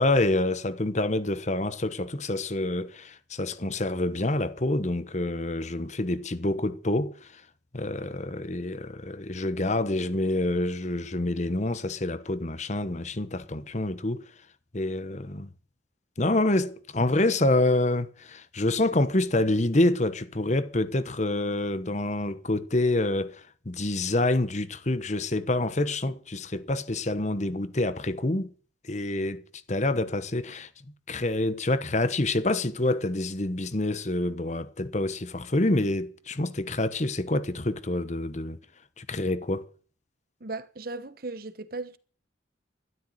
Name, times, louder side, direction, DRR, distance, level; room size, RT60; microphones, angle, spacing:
voice 1, 0.0-7.4 7.7-14.3 14.7-15.5 16.2-28.5 28.8-30.7 31.1-38.6 39.0-39.7, left 2 dB, 40° left, 1.1 m, -27 dB
voice 2, 40.4-42.0, right 3 dB, 50° right, 1.1 m, -36 dB
13.0 x 12.5 x 7.8 m
head